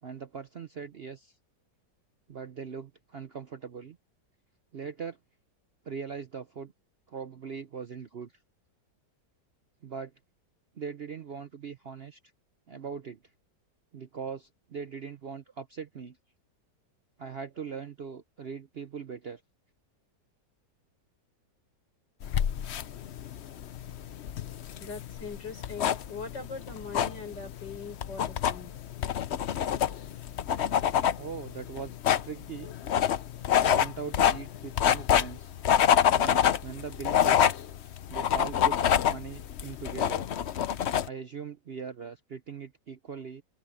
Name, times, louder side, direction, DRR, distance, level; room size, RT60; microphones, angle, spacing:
voice 1, 0.0-1.3 2.3-4.0 4.7-5.2 5.8-6.7 7.1-8.3 9.8-10.1 10.8-12.2 12.7-13.2 13.9-16.2 17.2-19.4 31.0-32.0 32.2-32.7 33.6-35.5 36.1-37.5 38.1-40.2 41.0-43.4, right 6 dB, 55° right, 0.7 m, -40 dB
sound 1, 22.2-41.1, left 9 dB, 55° left, 0.7 m, -27 dB
voice 2, 24.8-28.7, left 4 dB, 85° left, 6.5 m, -41 dB
open air
omnidirectional pair, 1.9 m